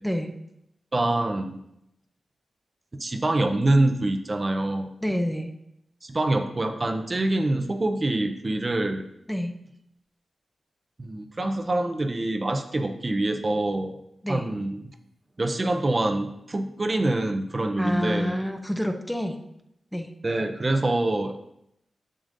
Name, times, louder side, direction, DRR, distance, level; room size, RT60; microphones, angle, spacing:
voice 1, 0.0-0.3 5.0-5.5 9.3-9.5 14.2-14.5 17.8-19.4 19.9-20.1, equal, ahead, 5 dB, 0.6 m, -28 dB
voice 2, 0.9-1.6 3.0-4.9 6.0-9.1 11.0-14.0 14.3-14.9 15.4-18.4 20.2-21.4, right 2 dB, 35° right, 5 dB, 0.6 m, -25 dB
7.3 x 6.7 x 2.6 m, 0.80 s
cardioid pair, 70°, 0 cm